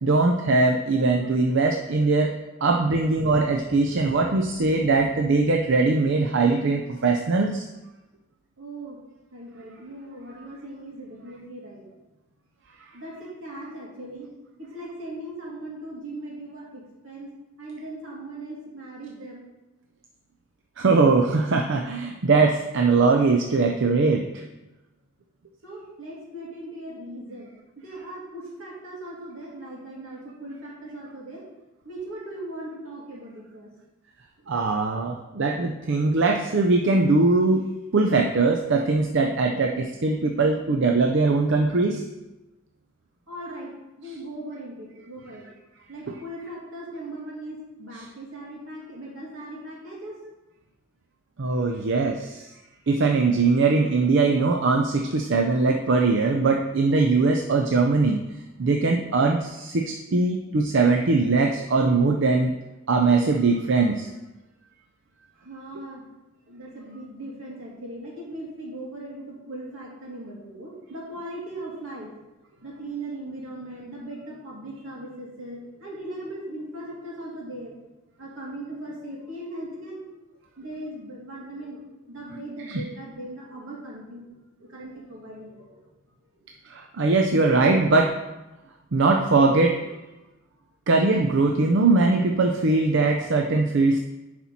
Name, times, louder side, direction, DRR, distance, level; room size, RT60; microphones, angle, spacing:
voice 1, 0.0-2.3 2.6-7.7 10.4-10.5 20.8-24.3 34.5-42.0 46.1-46.2 47.9-48.1 51.4-52.5 52.9-58.2 58.6-62.5 62.9-64.1 82.7-82.8 86.7-88.2 88.9-90.0 90.9-94.0, right 3 dB, 60° right, 2 dB, 0.6 m, -21 dB
voice 2, 8.6-9.0 9.3-11.8 12.9-14.3 14.6-17.3 17.6-19.5 25.6-27.5 27.8-31.4 31.8-33.7 43.3-45.4 45.9-50.2 65.4-66.0 66.5-72.1 72.6-77.7 78.2-80.0 80.6-81.8 82.1-85.8, right 1 dB, 80° right, -5 dB, 2.7 m, -39 dB
10.0 x 4.4 x 4.2 m, 1.0 s
head